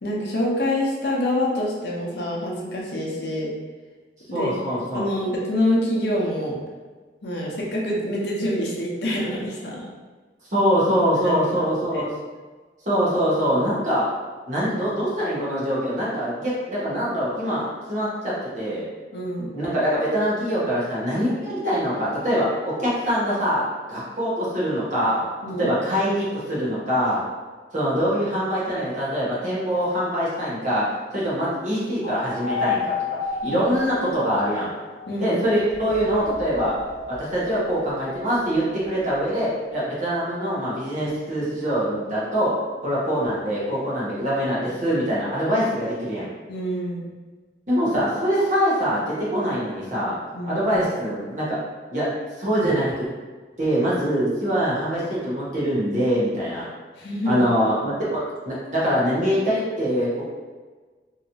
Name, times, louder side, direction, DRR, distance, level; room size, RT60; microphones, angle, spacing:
voice 1, 0.0-3.5 4.3-6.5 7.2-9.8 11.2-11.7 11.9-12.0 19.1-19.5 25.4-25.7 33.4-33.6 35.1-35.4 46.5-47.0 50.3-50.6 57.0-57.4, left 1 dB, 70° left, -4 dB, 0.7 m, -26 dB
voice 2, 4.3-5.1 10.5-12.1 12.8-14.1 14.5-18.8 19.5-22.5 22.8-23.6 23.9-25.2 25.6-27.2 27.7-30.8 31.1-32.9 33.4-34.7 35.2-36.7 37.1-42.5 42.8-46.3 47.7-50.2 50.5-51.6 51.9-52.1 52.4-53.0 53.6-56.7 57.3-60.2, equal, 45° right, -8 dB, 1.1 m, -24 dB
sound 1, 32.0-35.2 35.7-40.3, left 4 dB, 35° left, 0.4 m, -32 dB
3.0 x 2.8 x 2.7 m, 1.4 s
head